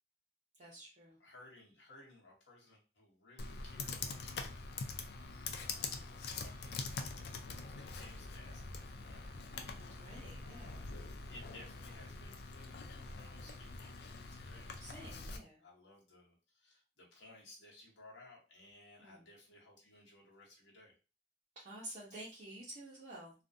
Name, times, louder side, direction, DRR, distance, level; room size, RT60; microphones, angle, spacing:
voice 1, 0.6-1.2 10.0-10.9 14.8-15.6 19.0-19.2 21.6-23.3, right 1 dB, 40° right, -5 dB, 0.6 m, -50 dB
voice 2, 1.2-4.9 5.6-7.4 7.8-10.9 11.3-20.9, left 2 dB, 75° left, -2 dB, 1.0 m, -59 dB
Computer keyboard, 3.4-15.4, left 4 dB, 60° left, 0.4 m, -44 dB
2.4 x 2.1 x 2.6 m, 0.32 s
head